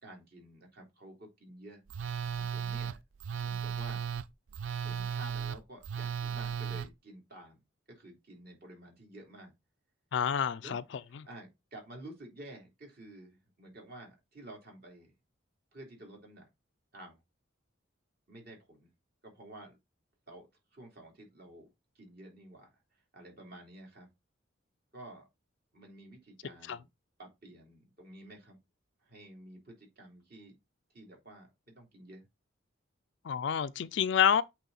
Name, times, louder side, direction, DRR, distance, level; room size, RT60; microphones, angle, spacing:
voice 1, 0.0-1.8 2.3-3.0 3.4-4.1 4.7-7.6 7.9-9.5 10.6-10.7 11.1-15.1 15.7-16.5 16.9-17.2 18.3-18.9 19.2-19.8 20.3-21.7 21.9-22.7 23.1-24.1 24.9-25.2 25.7-26.9 27.2-28.6 29.0-30.6 30.9-32.2, right 1 dB, 50° right, 2.9 m, -51 dB
Telephone, 1.9-6.9, right 7 dB, 80° right, 0.5 m, -36 dB
voice 2, 10.1-10.8 26.7-26.8 33.2-34.4, left 8 dB, 60° left, 0.4 m, -28 dB
8.2 x 3.6 x 4.0 m
head